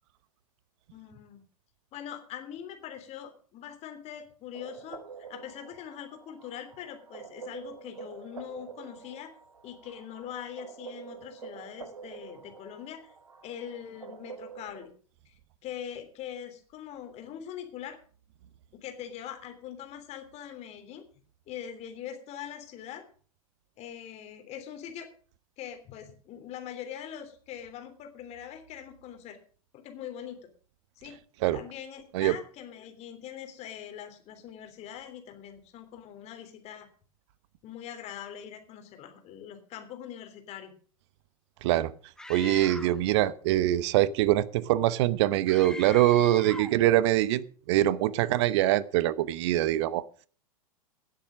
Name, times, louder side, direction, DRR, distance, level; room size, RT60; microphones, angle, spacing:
voice 1, 0.9-1.4 1.9-5.0 5.3-9.3 9.6-13.1 13.4-14.9 15.2-15.3 15.6-18.0 18.7-21.0 21.5-23.0 23.8-25.1 25.6-29.4 29.7-30.4 31.0-31.2 31.5-36.9 37.6-40.7, left 9 dB, 35° left, 6 dB, 3.3 m, -42 dB
sound 1, 4.5-14.9, right 6 dB, 75° right, 1.4 m, -47 dB
Screaming, 42.2-43.1 45.5-46.8, left 2 dB, 5° left, 0.8 m, -41 dB
voice 2, 42.3-47.4 47.7-50.0, right 14 dB, 50° right, 19 dB, 0.9 m, -24 dB
17.0 x 7.7 x 6.4 m, 0.44 s
figure-of-eight pair, 95°, 19 cm